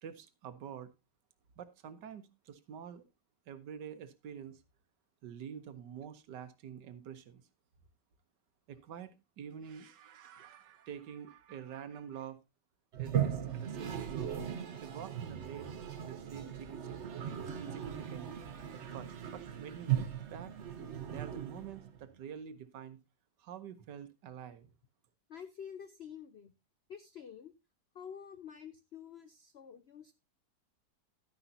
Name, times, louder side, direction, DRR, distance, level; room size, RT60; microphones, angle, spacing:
voice 1, 0.0-0.9 1.6-3.0 3.5-4.6 5.2-7.4 8.7-12.4 13.0-14.3 14.8-15.8 16.0-17.2 17.6-18.3 18.7-20.5 21.0-23.0 23.4-24.7, right 8 dB, 75° right, 12 dB, 1.5 m, -47 dB
Toilet flush, 12.9-22.0, right 9 dB, 50° right, 1.0 m, -38 dB
voice 2, 25.3-26.5 26.9-27.5 27.9-30.1, left 8 dB, 70° left, 10 dB, 0.6 m, -48 dB
11.5 x 9.8 x 2.7 m, 0.22 s
omnidirectional pair, 1.9 m